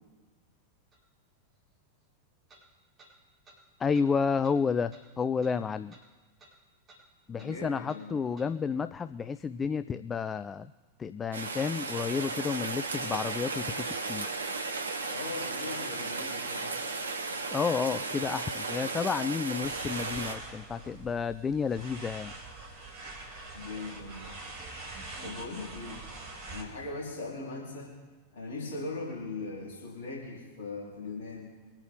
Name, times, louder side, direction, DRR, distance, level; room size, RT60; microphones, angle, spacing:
sound 1, 0.9-1.0 2.5-2.6 3.0-3.1 3.4-3.6 3.9-4.1 4.4-4.6 4.9-5.0 5.4-5.6 5.9-6.1 6.4-6.5 6.9-7.0 7.4-7.5 7.9-8.0 8.4-8.5, right 2 dB, 25° right, 5.5 m, -56 dB
voice 1, 3.8-6.0 7.3-10.7 11.0-14.3 17.5-22.3, left 6 dB, 20° left, 13 dB, 0.4 m, -31 dB
voice 2, 7.4-8.3 15.1-16.9 23.5-24.3 25.2-26.0 26.5-28.0 28.3-31.5, left 3 dB, 60° left, -4 dB, 4.2 m, -39 dB
Rain, 11.3-20.3, right 3 dB, 70° right, 1.2 m, -35 dB
sound 2, 19.6-26.6, right 2 dB, 50° right, 4.7 m, -44 dB
24.0 x 8.9 x 3.8 m, 1.4 s
figure-of-eight pair, 90°, 0 cm